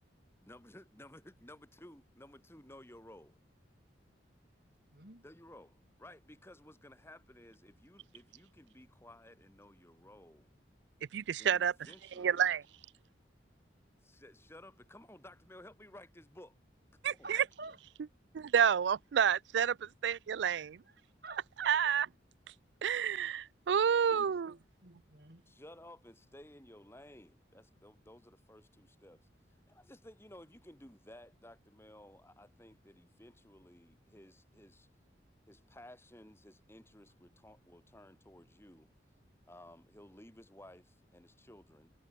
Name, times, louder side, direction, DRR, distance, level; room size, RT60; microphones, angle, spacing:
voice 1, 0.4-3.4 5.2-10.5 11.4-12.5 14.0-16.6 17.1-17.7 25.5-29.3 29.7-34.9 35.5-38.9 39.5-41.9, left 1 dB, 15° left, 3.2 m, -56 dB
voice 2, 4.9-5.2 17.2-17.8 20.4-20.6 21.2-21.4 24.2-25.4, right 3 dB, 55° right, 5.9 m, -50 dB
voice 3, 11.1-11.7 12.2-12.6 17.0-17.4 18.3-20.8 21.6-22.1 22.8-24.5, right 8 dB, 70° right, 0.4 m, -29 dB
head